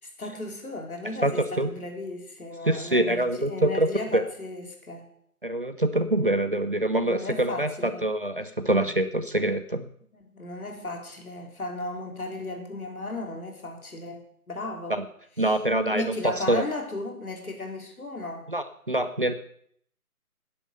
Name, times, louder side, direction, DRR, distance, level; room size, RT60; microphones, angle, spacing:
voice 1, 0.0-5.1 7.0-8.1 10.1-15.0 15.4-15.5 15.9-18.5, left 2 dB, 70° left, 3 dB, 3.9 m, -35 dB
voice 2, 1.2-1.7 2.7-4.2 5.4-9.8 14.9-15.0 15.4-16.1 16.5-16.6 18.5-19.3, right 1 dB, 35° right, 10 dB, 0.7 m, -25 dB
12.0 x 10.0 x 6.7 m, 0.65 s
figure-of-eight pair, 170°, 45 cm